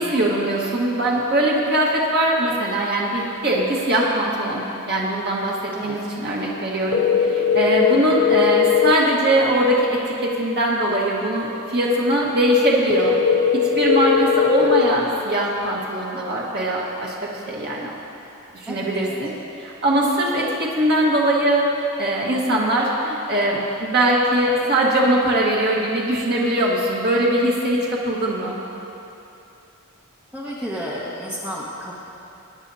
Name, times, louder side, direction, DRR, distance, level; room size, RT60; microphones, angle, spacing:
voice 1, 0.0-13.1 13.8-17.9 18.5-19.3 19.6-28.6, right 1 dB, 50° right, -4 dB, 1.5 m, -21 dB
sound 1, 6.9-8.9 12.9-14.9, left 7 dB, 50° left, 0.5 m, -18 dB
voice 2, 18.7-19.2 30.3-32.0, equal, 10° right, -7 dB, 1.4 m, -32 dB
21.0 x 10.0 x 2.8 m, 2.8 s
head